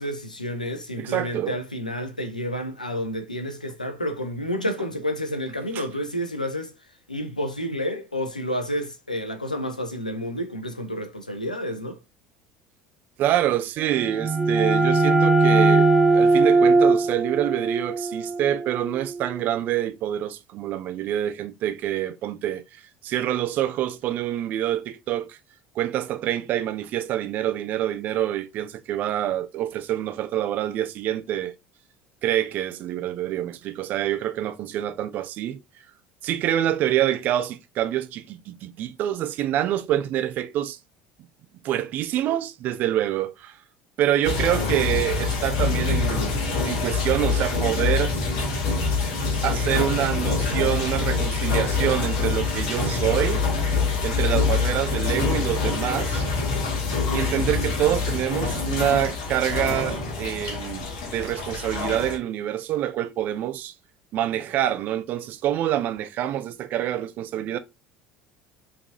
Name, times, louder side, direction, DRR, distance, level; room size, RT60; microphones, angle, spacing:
voice 1, 0.0-6.7 7.1-12.0, equal, 85° left, 0.7 m, -30 dB
voice 2, 1.0-1.6 5.7-5.8 13.2-22.6 23.0-25.4 25.7-31.5 32.2-35.6 36.2-40.8 41.6-43.6 44.0-48.1 49.4-53.4 54.0-56.3 57.1-63.7 64.1-67.6, right 12 dB, 45° right, 0.6 m, -26 dB
sound 1, 13.9-19.4, right 3 dB, 10° right, 0.9 m, -20 dB
sound 2, 44.2-62.2, left 4 dB, 60° left, 1.5 m, -25 dB
5.8 x 3.5 x 2.4 m
figure-of-eight pair, 65°, 4 cm